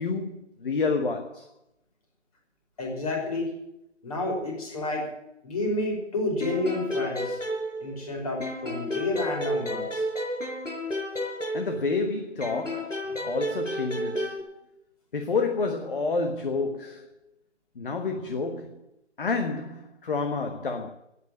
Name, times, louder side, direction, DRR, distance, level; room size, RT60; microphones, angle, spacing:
voice 1, 0.0-1.5 11.5-14.4 15.1-17.1 17.7-18.9 19.2-20.9, left 4 dB, 45° left, 1.5 m, -29 dB
voice 2, 2.8-3.5 4.0-5.1 5.4-7.4 7.8-10.1, left 1 dB, 30° left, 5.5 m, -30 dB
sound 1, 6.4-8.1 8.4-12.0 12.4-14.4, equal, 90° left, 5.6 m, -31 dB
13.5 x 9.9 x 9.6 m
figure-of-eight pair, 155°, 37 cm